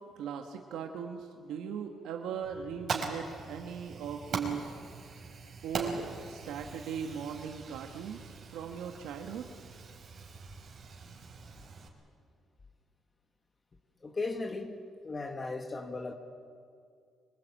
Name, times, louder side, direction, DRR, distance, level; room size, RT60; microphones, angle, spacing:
voice 1, 0.1-4.7 5.6-9.5, right 7 dB, 90° right, 3 dB, 1.5 m, -39 dB
Fire, 2.4-11.9, right 4 dB, 55° right, 4.8 m, -42 dB
voice 2, 14.0-16.1, left 3 dB, 30° left, 5 dB, 1.8 m, -37 dB
24.5 x 21.0 x 8.9 m, 2.3 s
cardioid pair, 90°, 0 cm